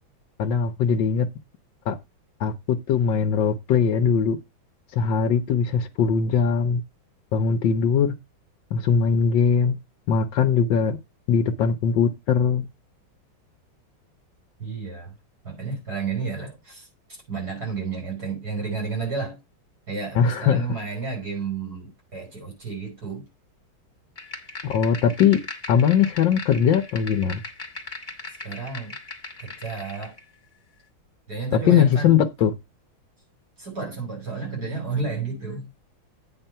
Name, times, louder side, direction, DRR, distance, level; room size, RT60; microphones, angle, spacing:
voice 1, 0.4-1.3 1.9-2.0 2.4-4.4 4.9-6.8 7.3-8.1 8.7-9.7 10.1-11.0 11.3-12.6 20.2-20.6 24.6-25.4 25.7-27.4 31.7-32.5, left 7 dB, 70° left, 1.3 m, -20 dB
voice 2, 14.6-15.1 15.4-16.9 17.3-19.4 19.9-23.3 28.4-28.9 29.4-30.2 31.3-32.2 33.6-35.7, right 4 dB, 45° right, 6.0 m, -31 dB
sound 1, 24.2-30.2, left 3 dB, 25° left, 1.7 m, -39 dB
8.9 x 4.4 x 5.5 m
omnidirectional pair, 2.2 m